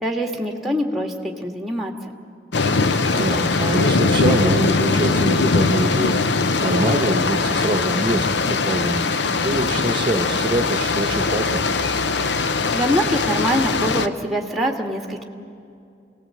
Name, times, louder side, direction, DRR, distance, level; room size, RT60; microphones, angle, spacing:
voice 1, 0.0-2.1 12.7-15.2, equal, ahead, 2 dB, 1.7 m, -24 dB
sound 1, 2.5-14.1, left 3 dB, 70° left, 0.8 m, -21 dB
voice 2, 3.1-6.2 6.6-9.1 9.4-11.6, right 1 dB, 25° right, 4 dB, 1.1 m, -24 dB
27.0 x 18.5 x 7.7 m, 2.5 s
head